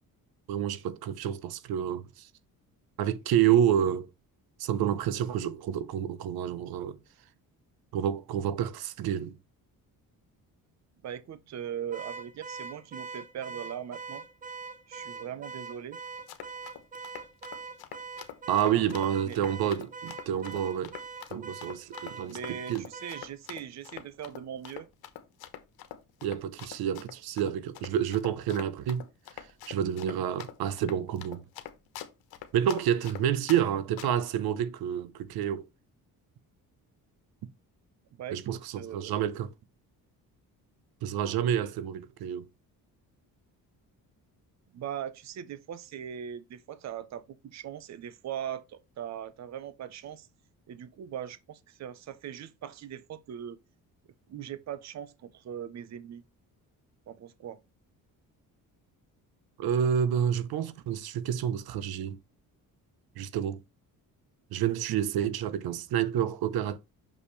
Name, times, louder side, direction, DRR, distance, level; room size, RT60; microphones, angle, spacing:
voice 1, 0.5-2.3 3.0-4.1 4.6-7.0 7.9-9.3 18.5-21.0 21.3-22.8 26.2-29.0 29.7-31.4 32.5-35.7 38.3-39.5 41.0-42.5 59.6-62.2 63.2-63.6 64.5-66.8, right 9 dB, 85° right, 0.9 m, -29 dB
voice 2, 11.0-14.2 14.9-16.0 19.3-19.4 22.3-24.9 38.2-39.2 44.7-50.3 50.7-53.6 54.3-56.2 57.1-57.6, right 9 dB, 50° right, 0.8 m, -40 dB
Car / Alarm, 11.9-23.3, right 5 dB, 20° right, 1.1 m, -43 dB
Run, 16.1-33.6 34.0-34.3, left 11 dB, 90° left, 1.3 m, -44 dB
6.5 x 5.7 x 3.2 m
cardioid pair, 135°, 36 cm